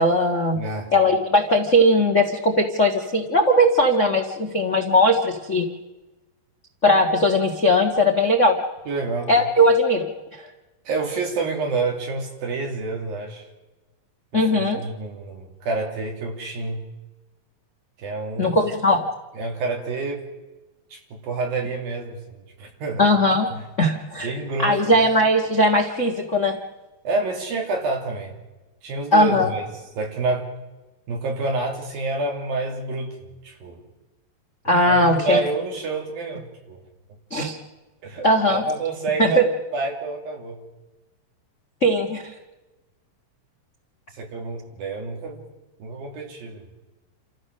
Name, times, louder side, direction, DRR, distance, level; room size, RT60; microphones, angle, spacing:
voice 1, 0.0-0.6 0.9-5.6 6.8-8.5 9.3-10.1 14.3-14.8 18.4-19.0 23.0-24.3 24.6-26.6 29.1-29.5 34.6-35.4 37.3-37.6 38.2-38.6 39.2-39.5 41.8-42.3, equal, 80° left, 3 dB, 0.6 m, -19 dB
voice 2, 0.5-0.9 8.9-9.3 10.9-13.4 14.5-16.8 18.0-18.6 19.3-20.2 20.9-23.0 23.5-23.6 24.2-24.8 27.0-28.3 28.8-29.6 30.0-30.4 31.1-33.1 33.4-33.8 34.9-36.8 38.0-40.6 44.1-45.4 45.8-46.6, right 3 dB, 70° right, 1 dB, 4.7 m, -28 dB
29.0 x 14.5 x 6.5 m, 1.1 s
omnidirectional pair, 4.3 m